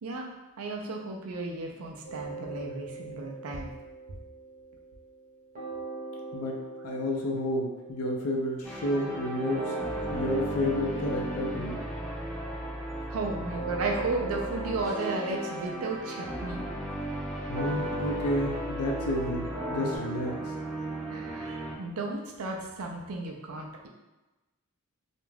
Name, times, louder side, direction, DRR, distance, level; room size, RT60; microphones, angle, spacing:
voice 1, 0.6-3.7 13.1-16.6 21.1-23.9, right 3 dB, 75° right, 1 dB, 0.5 m, -34 dB
sound 1, 2.0-5.3 5.5-20.0, right 1 dB, 35° right, 0.8 m, -40 dB
voice 2, 6.3-9.8 10.1-11.8 17.5-20.5, left 1 dB, 85° left, 1 dB, 0.5 m, -31 dB
sound 2, 8.6-21.7, right 1 dB, 5° left, 0.6 m, -36 dB
2.5 x 2.2 x 3.2 m, 1.1 s
head